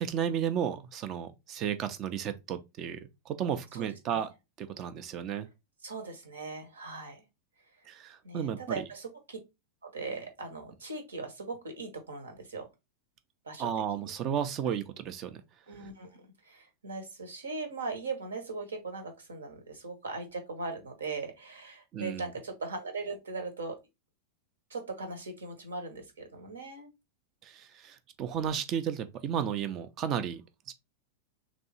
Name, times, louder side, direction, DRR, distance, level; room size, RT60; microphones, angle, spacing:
voice 1, 0.0-4.3 4.6-5.5 7.9-8.8 13.6-15.4 21.9-22.3 27.4-30.4 30.7-30.8, right 8 dB, 35° right, 0.6 m, -33 dB
voice 2, 3.7-4.3 5.8-7.2 8.2-9.4 9.8-12.7 13.4-13.7 14.0-14.1 15.7-23.8 24.7-26.9, right 3 dB, 70° right, 1.1 m, -39 dB
3.4 x 3.1 x 4.1 m
figure-of-eight pair, 90°, 0 cm